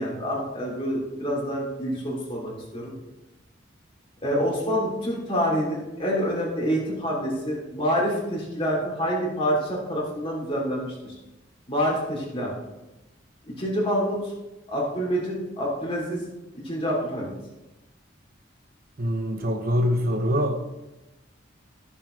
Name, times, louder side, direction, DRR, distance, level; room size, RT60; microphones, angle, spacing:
voice 1, 0.0-2.9 4.2-11.2 11.7-12.5 13.6-14.3 14.7-16.2 16.6-17.3, equal, 30° left, -4 dB, 3.2 m, -27 dB
voice 2, 19.0-20.7, equal, 50° right, 4 dB, 0.9 m, -24 dB
15.5 x 7.1 x 3.3 m, 1.0 s
head